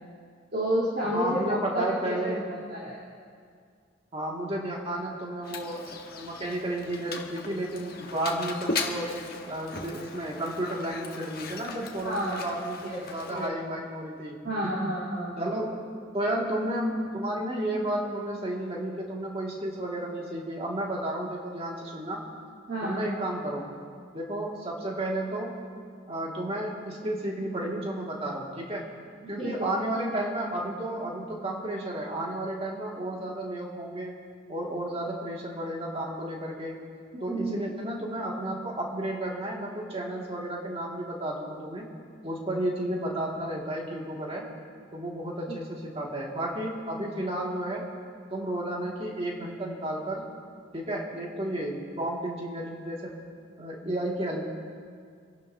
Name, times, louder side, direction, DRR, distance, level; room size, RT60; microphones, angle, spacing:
voice 1, 0.5-2.4 2.7-3.0 12.0-12.4 12.8-13.5 14.4-15.5 22.7-23.2 29.4-29.5 37.1-37.6 45.5-45.6, right 1 dB, 50° right, -9 dB, 3.5 m, -30 dB
voice 2, 1.1-2.5 4.1-9.1 9.4-14.7 15.4-15.8 16.1-22.2 22.8-23.7 24.1-25.6 26.1-28.8 29.3-34.2 34.5-36.8 37.2-41.9 42.2-44.5 44.9-47.9 48.3-50.2 50.7-53.1 53.6-54.4, right 1 dB, 30° right, -2 dB, 2.1 m, -32 dB
Mechanisms, 5.4-13.5, left 4 dB, 50° left, 1.1 m, -38 dB
27.5 x 11.5 x 2.7 m, 2.1 s
head